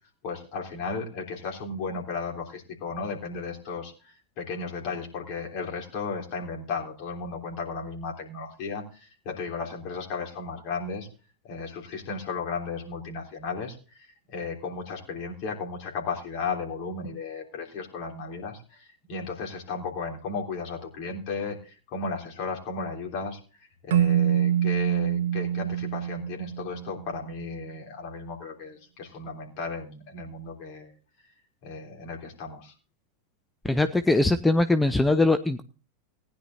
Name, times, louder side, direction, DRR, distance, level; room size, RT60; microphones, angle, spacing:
voice 1, 0.2-11.1 11.5-23.4 23.8-30.9 31.6-32.7, left 4 dB, 45° left, 1 dB, 3.3 m, -35 dB
Keyboard (musical), 23.9-27.1, right 10 dB, 60° right, 0.4 m, -25 dB
voice 2, 33.6-35.6, left 2 dB, 5° left, 10 dB, 0.5 m, -21 dB
19.0 x 10.5 x 2.7 m, 0.36 s
figure-of-eight pair, 90°, 0 cm